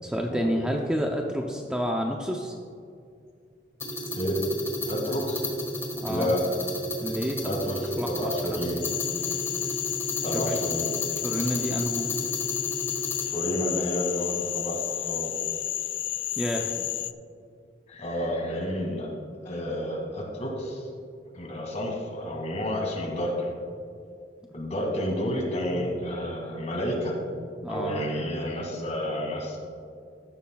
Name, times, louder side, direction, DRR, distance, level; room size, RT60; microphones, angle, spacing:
voice 1, 0.0-2.5 6.0-6.3 7.0-7.6 8.0-8.6 10.3-10.5 11.2-12.1 16.4-16.9 27.6-28.0, equal, 5° right, 0 dB, 0.5 m, -29 dB
sound 1, 3.8-13.2, equal, 15° left, 1.5 m, -33 dB
voice 2, 4.9-5.5 6.1-6.4 7.4-8.8 10.2-11.0 13.2-15.3 17.9-19.1 19.4-20.9 21.3-23.5 24.5-27.2 27.7-29.6, equal, 40° left, 0 dB, 2.1 m, -30 dB
Frog, 8.8-17.1, left 15 dB, 90° left, 0.3 m, -31 dB
14.0 x 11.5 x 2.3 m, 2.4 s
head